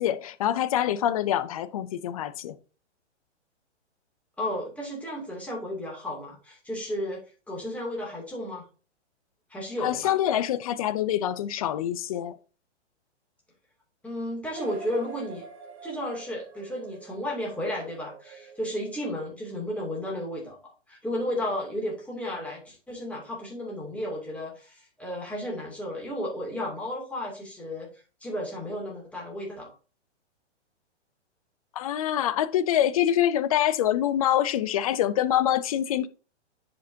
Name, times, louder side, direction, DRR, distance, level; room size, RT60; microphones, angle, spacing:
voice 1, 0.0-2.6 9.8-12.4 31.8-36.1, left 11 dB, 35° left, 0.4 m, -25 dB
voice 2, 4.4-7.2 7.5-8.6 9.5-10.2 14.0-15.4 15.8-27.9 28.2-29.7, left 1 dB, 5° left, 2.5 m, -33 dB
sound 1, 14.5-19.3, right 5 dB, 30° right, 1.3 m, -45 dB
10.0 x 5.1 x 2.7 m
hypercardioid pair, 140°, 35 cm